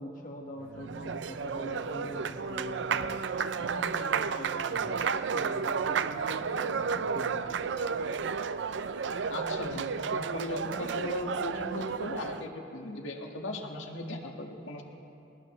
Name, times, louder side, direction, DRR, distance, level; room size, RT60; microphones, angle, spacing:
voice 1, 0.0-7.7, equal, 40° left, 0 dB, 1.5 m, -44 dB
Applause, 0.6-12.5, right 6 dB, 65° right, 0.4 m, -32 dB
voice 2, 9.3-14.8, left 2 dB, 90° left, 1 dB, 1.7 m, -37 dB
20.5 x 19.5 x 3.2 m, 2.7 s
head